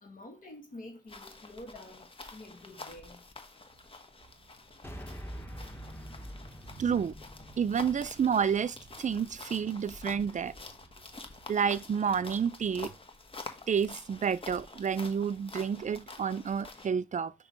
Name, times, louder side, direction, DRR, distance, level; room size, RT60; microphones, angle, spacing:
voice 1, 0.0-2.1 2.3-3.2, left 1 dB, 55° left, 2.1 m, -48 dB
sound 1, 1.1-16.9, left 3 dB, 35° left, 1.2 m, -48 dB
sound 2, 4.8-9.3, equal, 15° left, 1.4 m, -46 dB
voice 2, 6.8-7.1 7.6-10.5 11.5-12.9 13.7-17.3, right 7 dB, 50° right, 0.5 m, -30 dB
6.1 x 3.0 x 5.2 m
cardioid pair, 50°, 17 cm